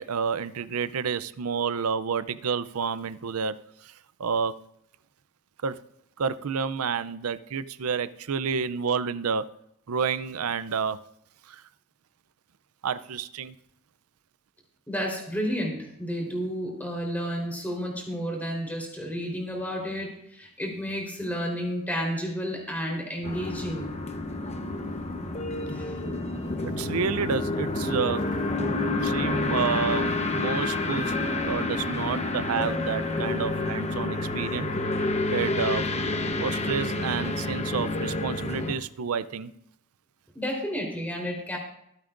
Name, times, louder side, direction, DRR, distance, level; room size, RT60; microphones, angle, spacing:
voice 1, 0.0-3.6 3.8-3.9 4.2-4.6 5.6-5.8 6.2-9.5 9.9-11.0 11.5-11.6 12.8-13.5 26.6-28.3 29.0-34.7 35.3-35.9 36.4-39.5, right 6 dB, 90° right, 15 dB, 0.5 m, -29 dB
voice 2, 14.9-23.9 25.7-26.0 40.3-41.6, equal, 10° left, -1 dB, 3.9 m, -31 dB
sound 1, 23.2-38.7, left 2 dB, 30° left, 1.0 m, -29 dB
24.0 x 8.9 x 2.6 m, 0.74 s
head